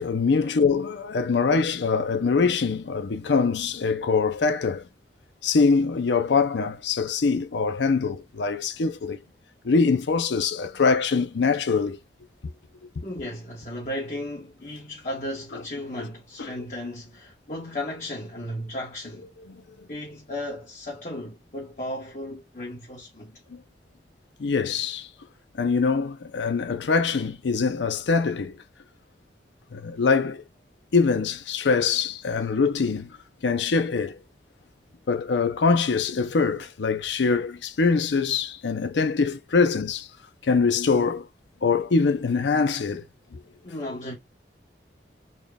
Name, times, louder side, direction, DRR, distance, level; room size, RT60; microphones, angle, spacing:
voice 1, 0.0-4.9 5.4-9.2 9.6-12.0 16.4-16.5 23.5-23.6 24.4-25.1 25.6-28.6 29.7-30.4 30.9-33.1 33.4-34.2 35.1-40.1 40.4-41.3 41.6-43.0 43.3-43.4, left 4 dB, 80° left, 0.5 m, -23 dB
voice 2, 13.0-19.3 19.9-23.4 43.6-44.1, left 1 dB, 45° left, 1.3 m, -35 dB
4.3 x 2.3 x 3.3 m
head